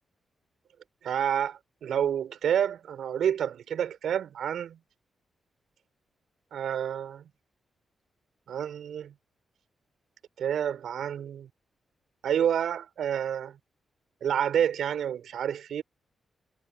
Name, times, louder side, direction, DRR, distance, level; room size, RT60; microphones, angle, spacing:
voice 1, 1.0-4.8 6.5-7.3 8.5-9.1 10.4-11.5 12.2-13.6 14.2-15.8, right 9 dB, 80° right, 6.0 m, -29 dB
wide cardioid pair, 165°, 0 cm